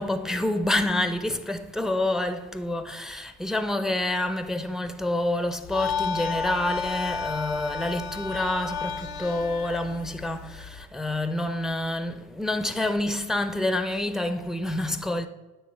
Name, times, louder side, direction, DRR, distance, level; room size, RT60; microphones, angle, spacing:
voice 1, 0.0-15.3, left 1 dB, ahead, 0.5 m, -28 dB
sound 1, 5.6-10.8, left 5 dB, 85° left, 0.7 m, -32 dB
9.4 x 3.4 x 4.5 m
supercardioid pair, 65°, 37 cm